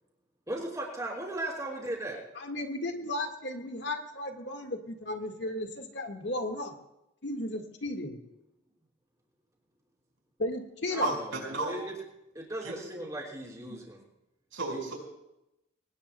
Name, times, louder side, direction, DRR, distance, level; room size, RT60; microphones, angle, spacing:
voice 1, 0.5-2.2 10.9-11.9 12.3-14.0 14.7-14.9, right 1 dB, 15° right, -2 dB, 4.5 m, -37 dB
voice 2, 2.4-6.7 7.2-8.2 10.4-11.1, left 1 dB, 60° left, 3 dB, 1.7 m, -34 dB
voice 3, 11.0-11.8 12.6-12.7 14.5-15.0, right 3 dB, 85° right, 1 dB, 5.0 m, -33 dB
23.5 x 19.0 x 2.3 m, 0.90 s
head